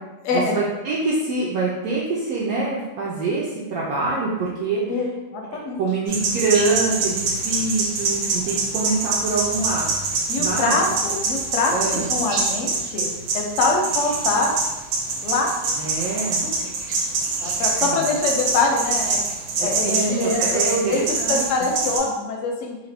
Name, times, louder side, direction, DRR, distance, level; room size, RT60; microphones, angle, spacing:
voice 1, 0.3-4.8 5.8-10.8 11.7-12.1 15.8-16.5 17.8-18.0 19.6-21.5, right 3 dB, 70° right, -6 dB, 1.0 m, -25 dB
voice 2, 5.3-5.8 10.3-14.6 15.2-15.5 16.4-16.7 17.4-19.2 19.6-22.8, left 3 dB, 65° left, 1 dB, 0.8 m, -24 dB
sound 1, 6.1-22.0, right 4 dB, 90° right, 1.2 m, -25 dB
2.9 x 2.5 x 3.3 m, 1.1 s
omnidirectional pair, 1.7 m